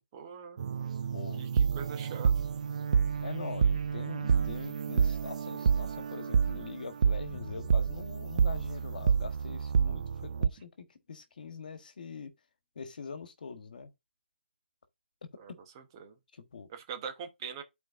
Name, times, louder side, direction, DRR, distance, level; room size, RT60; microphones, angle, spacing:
voice 1, 0.1-0.6 1.4-2.3 15.4-15.5 16.0-16.1 16.7-17.6, right 7 dB, 25° right, 1.1 m, -42 dB
sound 1, 0.6-10.5, right 6 dB, 40° right, 0.4 m, -29 dB
voice 2, 1.1-1.4 3.2-12.3 12.7-13.9 15.2-15.6 16.3-16.7, left 5 dB, 55° left, 1.5 m, -43 dB
sound 2, 7.3-9.1, left 6 dB, 20° left, 0.6 m, -50 dB
11.5 x 4.5 x 2.5 m
hypercardioid pair, 160°, 6 cm